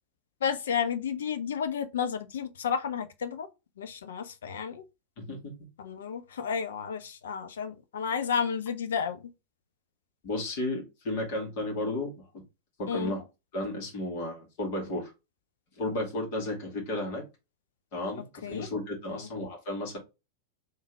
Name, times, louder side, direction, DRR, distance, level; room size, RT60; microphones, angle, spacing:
voice 1, 0.4-3.5 3.8-4.8 5.8-9.2 12.9-13.1 18.2-18.7 19.1-19.3, left 7 dB, 65° left, 0.6 m, -32 dB
voice 2, 10.2-12.3 12.8-13.2 13.5-15.1 15.8-17.2 17.9-20.0, left 1 dB, 45° left, 2.1 m, -33 dB
3.6 x 3.1 x 3.3 m
figure-of-eight pair, 90°, 0 cm